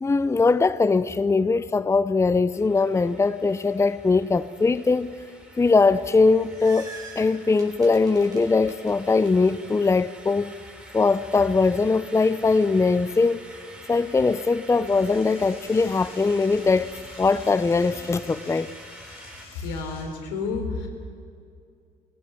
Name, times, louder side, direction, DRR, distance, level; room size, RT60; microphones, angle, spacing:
voice 1, 0.0-5.1 5.6-10.5 10.9-13.4 13.9-16.9 17.2-18.7, left 4 dB, 15° left, 16 dB, 0.6 m, -21 dB
sound 1, 2.5-19.4, right 1 dB, 5° right, 4.9 m, -47 dB
sound 2, 6.2-9.3, right 3 dB, 25° right, 4.6 m, -44 dB
Door / Toilet flush, 14.8-20.0, left 3 dB, 70° left, 5.7 m, -48 dB
voice 2, 19.6-20.9, left 4 dB, 90° left, 4 dB, 3.5 m, -30 dB
17.5 x 16.0 x 9.6 m, 2.3 s
supercardioid pair, 75°, 17 cm